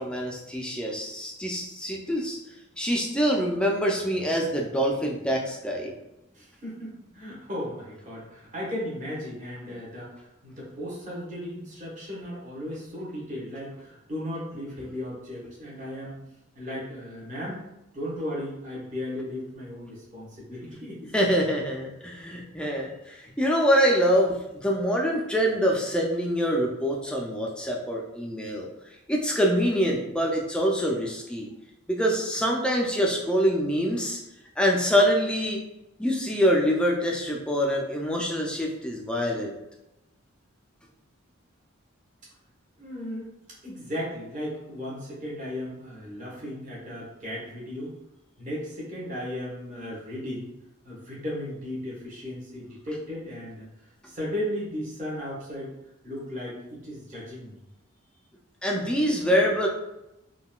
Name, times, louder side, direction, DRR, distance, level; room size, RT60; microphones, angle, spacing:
voice 1, 0.0-2.4 2.8-5.9 21.1-28.7 29.1-31.5 31.9-34.2 34.6-35.6 36.0-39.6 58.6-59.7, equal, 5° left, -1 dB, 0.3 m, -25 dB
voice 2, 6.3-16.2 16.5-17.6 17.9-21.1 42.8-43.3 43.6-47.9 48.4-50.5 50.8-53.7 54.0-55.7 56.0-57.6, left 1 dB, 35° right, -6 dB, 1.0 m, -36 dB
3.7 x 2.2 x 2.3 m, 0.92 s
head